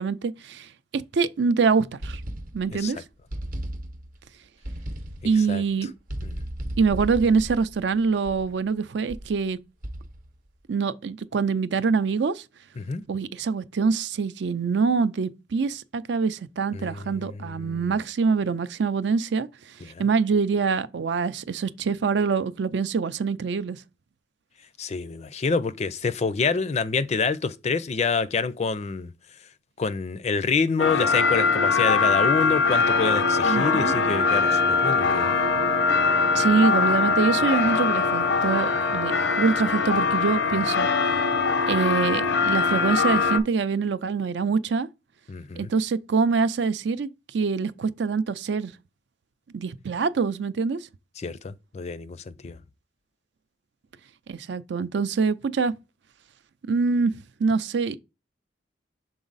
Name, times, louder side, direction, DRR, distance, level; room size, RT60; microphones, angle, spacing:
voice 1, 0.0-2.2 2.5-3.0 5.2-5.9 6.8-9.6 10.7-12.4 13.1-23.8 33.4-34.0 36.3-40.9 41.7-44.9 45.6-48.7 49.5-50.8 54.3-55.7 56.7-58.0, right 5 dB, 70° right, 0.4 m, -25 dB
sound 1, 2.0-2.9 3.3-4.2 4.6-5.4 6.1-8.6 9.1-9.4 9.8-10.4, right 1 dB, 50° right, 0.8 m, -35 dB
voice 2, 16.7-17.8 19.8-20.0 24.8-29.1 29.8-35.3 45.3-45.7 51.2-52.6, left 4 dB, 35° left, 0.4 m, -27 dB
sound 2, 30.8-43.4, left 4 dB, 85° left, 0.7 m, -22 dB
6.2 x 3.9 x 3.9 m
head